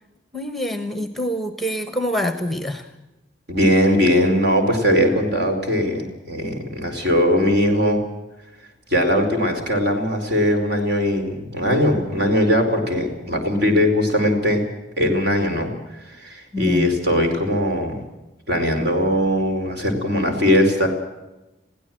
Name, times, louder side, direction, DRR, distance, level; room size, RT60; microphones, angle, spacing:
voice 1, 0.3-2.9 16.5-16.9, left 1 dB, ahead, 8 dB, 1.2 m, -25 dB
voice 2, 3.5-8.0 8.9-14.6 15.0-18.0 18.5-20.9, equal, 55° right, 4 dB, 4.6 m, -20 dB
22.0 x 16.5 x 7.8 m, 1.0 s
head